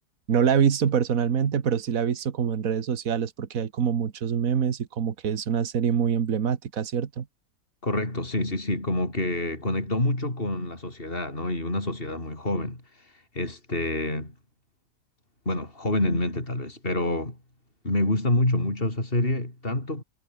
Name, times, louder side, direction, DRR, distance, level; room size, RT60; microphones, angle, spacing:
voice 1, 0.3-7.3, right 7 dB, 70° right, 1.8 m, -25 dB
voice 2, 7.8-14.3 15.5-17.4 17.8-20.0, left 1 dB, 40° left, 5.9 m, -27 dB
omnidirectional pair, 1.5 m